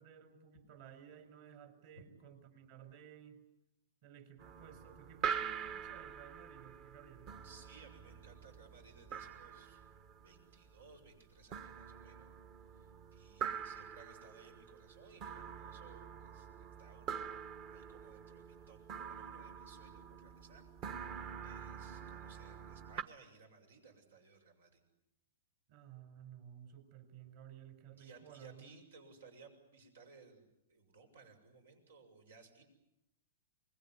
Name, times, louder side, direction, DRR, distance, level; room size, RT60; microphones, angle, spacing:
voice 1, 0.0-3.4 4.0-7.3 25.7-28.8, right 9 dB, 50° right, 8 dB, 5.0 m, -56 dB
sound 1, 4.4-23.0, right 7 dB, 35° right, 1.2 m, -45 dB
voice 2, 7.4-9.8 10.2-12.3 12.7-21.0 21.4-24.8 28.0-32.6, right 4 dB, 85° right, 6 dB, 7.0 m, -60 dB
25.0 x 21.5 x 9.8 m, 0.85 s
hypercardioid pair, 145°, 0 cm